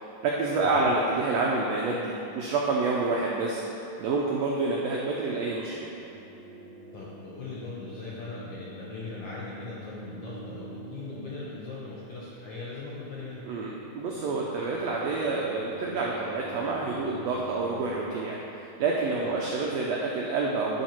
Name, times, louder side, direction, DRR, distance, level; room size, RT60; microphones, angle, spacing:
voice 1, 0.2-3.6 4.0-5.9 13.5-20.8, right 3 dB, 90° right, -2 dB, 1.4 m, -28 dB
sound 1, 5.6-18.1, right 1 dB, 45° right, 0.6 m, -46 dB
voice 2, 6.9-13.4 19.2-19.4, left 3 dB, 70° left, -7 dB, 1.4 m, -40 dB
10.5 x 3.9 x 4.4 m, 2.9 s
omnidirectional pair, 3.7 m